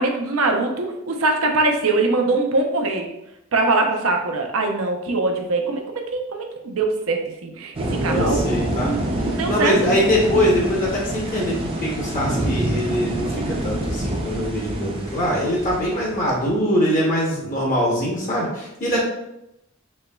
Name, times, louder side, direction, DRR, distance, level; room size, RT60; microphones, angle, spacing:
voice 1, 0.0-3.1 3.5-5.8 6.1-7.7 8.0-8.5 8.8-9.9, right 3 dB, 80° right, 2 dB, 0.6 m, -22 dB
sound 1, 7.7-16.6, right 1 dB, 25° right, 0.5 m, -26 dB
voice 2, 7.9-8.9 9.4-19.0, equal, 40° left, -3 dB, 0.7 m, -22 dB
4.3 x 2.9 x 2.2 m, 0.86 s
head